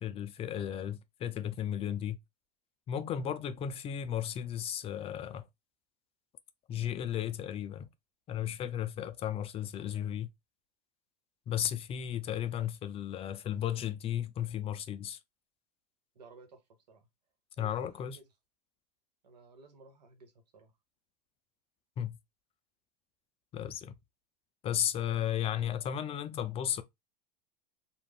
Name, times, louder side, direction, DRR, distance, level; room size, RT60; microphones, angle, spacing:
voice 1, 0.0-2.2 2.9-5.5 6.7-7.9 8.3-10.3 11.5-15.2 17.6-18.2 22.0-22.2 23.5-23.9 24.6-26.8, left 10 dB, 30° left, 0.3 m, -34 dB
voice 2, 0.6-0.9 16.1-16.6 16.9-17.1 17.6-18.3 19.2-20.7, right 3 dB, 85° right, 0.9 m, -55 dB
2.4 x 2.1 x 3.3 m
hypercardioid pair, 95°, 21 cm